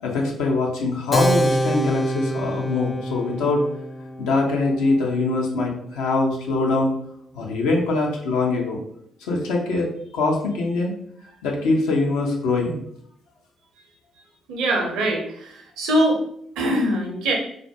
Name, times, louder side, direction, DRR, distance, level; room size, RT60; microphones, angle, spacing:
voice 1, 0.0-3.6 4.2-6.9 7.3-8.8 9.3-11.0 11.4-12.8, left 3 dB, 75° left, -1 dB, 0.5 m, -23 dB
Keyboard (musical), 1.1-7.2, equal, 20° left, 0.3 m, -27 dB
voice 2, 14.5-16.2 16.6-17.3, right 1 dB, 70° right, 1 dB, 0.6 m, -22 dB
2.3 x 2.1 x 2.7 m, 0.66 s
hypercardioid pair, 45°, 0 cm